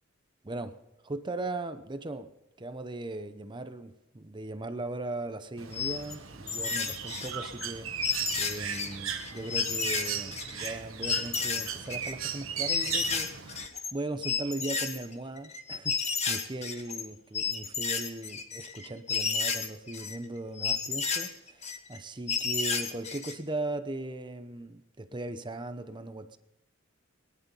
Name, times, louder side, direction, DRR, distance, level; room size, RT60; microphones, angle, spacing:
voice 1, 0.4-0.8 1.0-2.3 2.6-13.3 13.9-26.4, right 2 dB, 25° right, 9 dB, 0.8 m, -38 dB
Bird, 5.6-13.7, right 8 dB, 75° right, 1.4 m, -37 dB
sound 1, 5.7-6.1 6.5-7.7 8.0-10.7 11.0-12.1 12.7-13.9 14.2-17.1 17.3-20.2 20.6-22.0 22.3-23.4, left 5 dB, 35° left, 1.5 m, -32 dB
20.5 x 10.5 x 5.5 m, 0.91 s
head